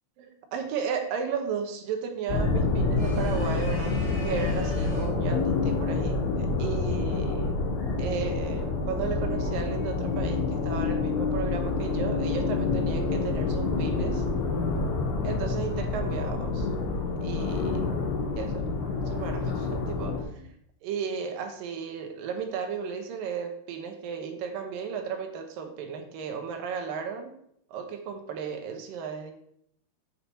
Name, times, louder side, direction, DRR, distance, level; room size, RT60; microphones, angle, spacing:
voice 1, 0.2-7.6 8.0-14.2 15.2-16.7 17.2-17.9 18.4-18.7 19.0-20.5 20.8-27.3 27.7-29.3, right 6 dB, 70° right, 4 dB, 2.3 m, -34 dB
sound 1, 2.3-20.2, left 3 dB, 70° left, 3.5 m, -28 dB
sound 2, 3.0-5.2, left 1 dB, 25° left, 1.5 m, -45 dB
8.6 x 5.7 x 4.4 m, 0.69 s
omnidirectional pair, 4.7 m